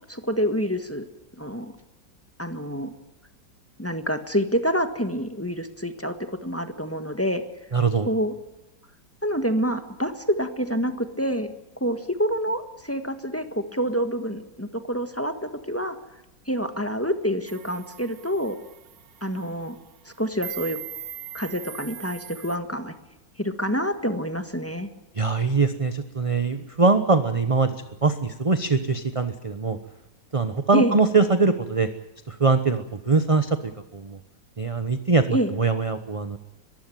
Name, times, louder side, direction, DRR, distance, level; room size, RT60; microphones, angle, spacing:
voice 1, 0.1-1.1 1.3-1.7 2.4-2.9 3.8-7.4 8.0-8.3 9.2-11.5 11.8-16.0 16.5-18.6 19.2-19.7 20.0-20.8 21.3-22.9 23.4-24.9 30.7-31.0 35.3-35.5, equal, 10° left, 7 dB, 1.5 m, -27 dB
voice 2, 7.7-8.1 25.1-29.8 30.3-31.9 32.3-34.2 34.6-36.4, right 4 dB, 30° right, 10 dB, 0.7 m, -22 dB
sound 1, 17.5-22.6, right 9 dB, 70° right, 1.7 m, -40 dB
22.5 x 15.0 x 9.2 m, 0.96 s
omnidirectional pair, 2.0 m